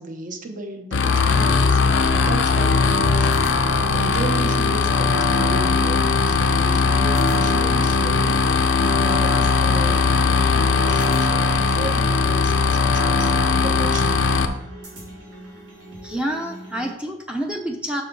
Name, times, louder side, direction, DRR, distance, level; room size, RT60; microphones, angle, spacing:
voice 1, 0.0-1.8 2.1-8.4 8.9-14.3, right 2 dB, 45° right, 5 dB, 0.9 m, -34 dB
sound 1, 0.9-14.5, left 4 dB, 80° left, 0.6 m, -19 dB
sound 2, 1.5-16.9, equal, 90° right, 3.1 m, -42 dB
voice 2, 16.0-18.0, equal, 5° right, 2 dB, 0.6 m, -28 dB
6.2 x 5.7 x 4.6 m, 0.84 s
head